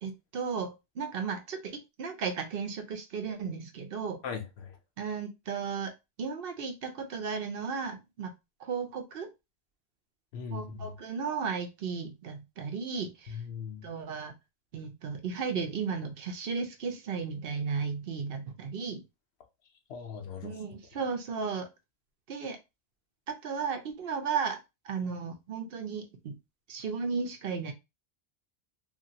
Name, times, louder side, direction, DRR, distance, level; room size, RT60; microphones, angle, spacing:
voice 1, 0.0-4.2 5.0-5.9 6.2-8.3 8.6-9.3 10.5-13.4 13.8-14.3 14.7-19.0 20.4-21.7 22.3-22.6 23.3-24.6 24.8-26.3 26.7-27.7, right 5 dB, 65° right, 0.8 m, -34 dB
voice 2, 4.2-4.7 10.3-10.9 13.3-13.9 19.9-20.6, left 6 dB, 85° left, 0.9 m, -39 dB
2.9 x 2.5 x 2.7 m
omnidirectional pair, 1.1 m